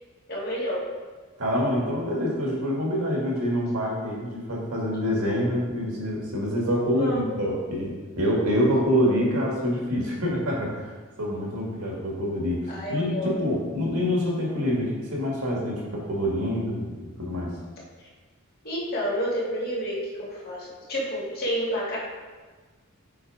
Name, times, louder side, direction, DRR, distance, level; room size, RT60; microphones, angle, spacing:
voice 1, 0.3-0.9 6.9-7.2 12.7-13.6 18.6-22.0, equal, 45° left, -6 dB, 2.3 m, -29 dB
voice 2, 1.4-10.9 11.2-17.5, equal, 85° right, -3 dB, 2.0 m, -26 dB
7.1 x 4.4 x 4.9 m, 1.4 s
head